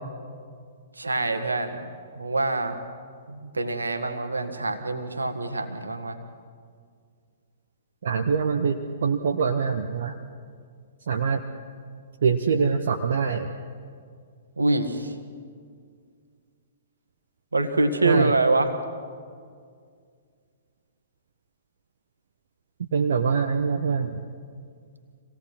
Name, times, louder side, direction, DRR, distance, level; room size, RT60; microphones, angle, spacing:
voice 1, 1.0-1.9 2.2-2.8 3.3-6.2 14.6-15.1 17.5-18.8, right 2 dB, 75° right, 8 dB, 1.8 m, -25 dB
voice 2, 8.0-10.1 11.1-11.4 12.2-13.5 18.0-18.3 22.9-24.2, right 5 dB, 55° right, 4 dB, 1.0 m, -24 dB
26.0 x 18.0 x 6.1 m, 2.1 s
figure-of-eight pair, 115°, 0 cm